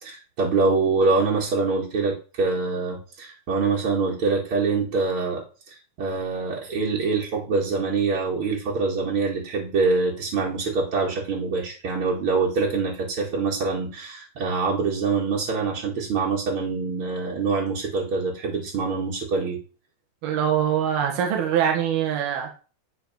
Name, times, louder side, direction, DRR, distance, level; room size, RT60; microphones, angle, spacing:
voice 1, 0.0-19.6, right 4 dB, 40° right, -4 dB, 2.5 m, -25 dB
voice 2, 20.2-22.6, right 9 dB, 75° right, 2 dB, 3.7 m, -23 dB
12.5 x 4.6 x 5.7 m, 0.35 s
omnidirectional pair, 4.4 m